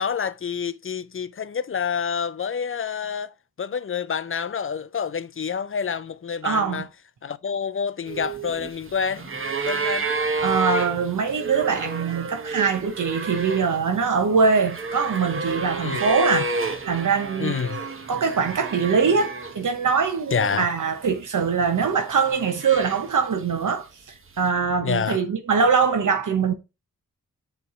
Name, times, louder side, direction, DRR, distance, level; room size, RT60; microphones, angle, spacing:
voice 1, 0.0-6.9 7.2-9.3 9.7-10.1 15.8-16.1 17.4-17.8 20.3-20.7 24.8-25.2, left 6 dB, 40° left, 0.4 m, -28 dB
voice 2, 6.4-6.8 10.2-17.5 18.1-23.9 24.4-26.5, right 5 dB, 70° right, 0.9 m, -23 dB
sound 1, 8.1-19.7 20.0-20.9 21.7-23.4 24.4-24.5, right 3 dB, 40° right, 1.0 m, -30 dB
6.8 x 3.3 x 4.9 m
wide cardioid pair, 95°, 32 cm